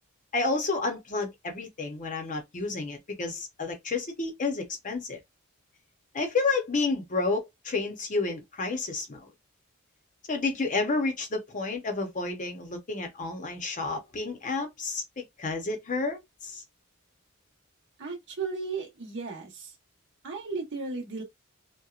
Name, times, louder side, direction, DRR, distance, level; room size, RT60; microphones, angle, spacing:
voice 1, 0.3-5.2 6.1-9.3 10.3-16.6, left 3 dB, 35° left, 0.7 m, -30 dB
voice 2, 18.0-19.7 20.2-21.2, right 4 dB, 60° right, 1.0 m, -35 dB
2.8 x 2.2 x 2.4 m
head